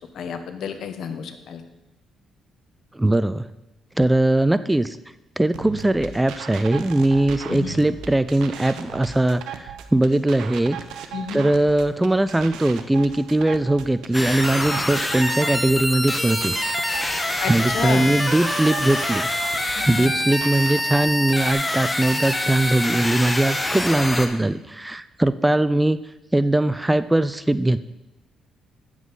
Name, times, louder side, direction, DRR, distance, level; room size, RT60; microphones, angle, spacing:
voice 1, 0.1-1.6 7.5-7.8 11.1-11.4 15.0-15.1 17.4-18.1 19.8-20.1, left 6 dB, 70° left, 8 dB, 0.9 m, -30 dB
voice 2, 2.9-3.5 4.0-5.0 5.4-10.8 11.3-17.0 17.5-19.3 19.7-26.0 26.3-27.8, right 1 dB, 10° right, 14 dB, 0.3 m, -20 dB
sound 1, 5.5-21.5, right 8 dB, 85° right, 0.7 m, -37 dB
sound 2, 14.1-24.3, left 1 dB, 10° left, 0.9 m, -25 dB
9.7 x 7.2 x 3.9 m, 0.98 s
cardioid pair, 90°, 0 cm